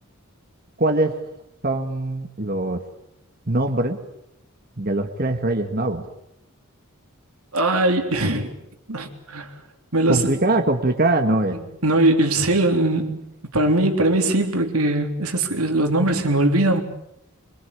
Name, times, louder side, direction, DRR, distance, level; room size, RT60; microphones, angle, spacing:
voice 1, 0.8-1.1 1.6-2.8 3.5-4.0 4.8-6.1 10.1-11.6, right 2 dB, 45° right, 1.8 m, -22 dB
voice 2, 7.5-8.6 8.9-9.5 9.9-10.3 11.8-13.2 13.5-16.8, right 2 dB, 90° right, 3.6 m, -20 dB
25.0 x 24.0 x 8.6 m
head